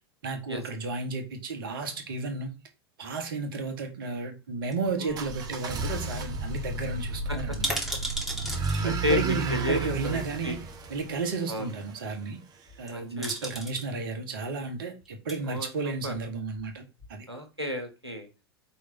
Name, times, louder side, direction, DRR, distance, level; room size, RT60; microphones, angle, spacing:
voice 1, 0.2-2.5 3.0-7.7 8.8-10.6 10.9-12.4 12.8-17.3, right 4 dB, 60° right, 1.5 m, -33 dB
sound 1, 4.7-5.5 5.8-5.9 6.1-6.3 6.6-6.7 7.4-8.8 10.0-10.1 12.7-12.9 13.2-13.9 15.0-15.4 16.0-16.7 17.0-17.1, right 1 dB, 5° right, 2.0 m, -35 dB
voice 2, 5.0-5.3 7.3-7.4 8.5-10.6 11.5-11.7 12.9-13.5 15.5-16.1 17.3-18.3, left 1 dB, 85° right, 1.4 m, -32 dB
sound 2, 5.1-12.0, right 3 dB, 30° right, 1.2 m, -33 dB
5.4 x 3.4 x 5.3 m
figure-of-eight pair, 85°, 13 cm